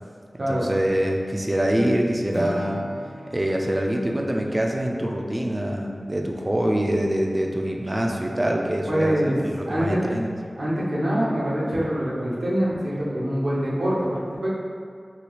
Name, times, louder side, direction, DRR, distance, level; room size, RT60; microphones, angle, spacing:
voice 1, 0.5-2.8 3.3-10.3, right 1 dB, 25° right, 1 dB, 0.3 m, -25 dB
Acoustic guitar / Strum, 2.3-6.4, left 1 dB, 50° left, 0.6 m, -40 dB
voice 2, 8.9-10.0 10.6-14.5, equal, 70° right, -7 dB, 0.7 m, -24 dB
2.9 x 2.3 x 3.0 m, 2.1 s
wide cardioid pair, 50°, 0 cm